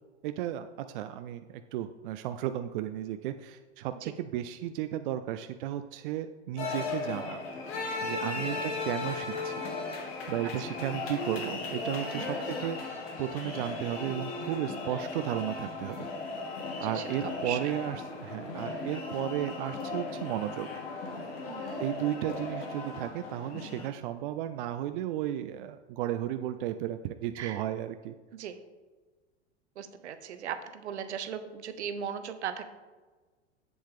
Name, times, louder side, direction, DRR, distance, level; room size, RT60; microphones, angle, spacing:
voice 1, 0.2-7.4 8.0-9.6 10.3-16.0 16.8-21.1 21.8-28.1, right 12 dB, 50° right, 9 dB, 0.4 m, -34 dB
sound 1, 6.6-23.9, left 3 dB, 55° left, 1.7 m, -37 dB
voice 2, 12.1-12.6 16.8-17.7 21.4-21.8 27.4-27.6 28.3-28.6 29.8-32.6, right 8 dB, 70° right, 10 dB, 0.8 m, -38 dB
7.9 x 7.1 x 3.5 m, 1.3 s
figure-of-eight pair, 95°, 35 cm